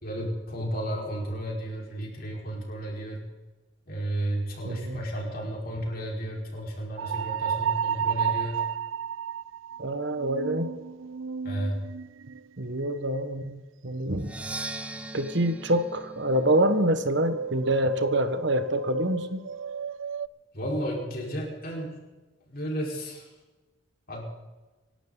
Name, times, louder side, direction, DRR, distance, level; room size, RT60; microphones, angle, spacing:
voice 1, 0.0-3.2 3.9-8.6 11.4-11.9 20.5-22.0 22.5-23.3 24.1-24.2, right 1 dB, 45° left, -1 dB, 4.6 m, -33 dB
voice 2, 4.6-5.0 9.8-10.7 12.6-14.3 15.1-19.4, right 1 dB, 65° right, 9 dB, 1.3 m, -26 dB
sound 1, 7.0-12.6 17.1-20.3, right 7 dB, 80° right, 0.4 m, -32 dB
Percussion, 14.2-18.0, right 2 dB, 5° right, 0.7 m, -40 dB
27.0 x 12.0 x 4.0 m, 1.2 s
head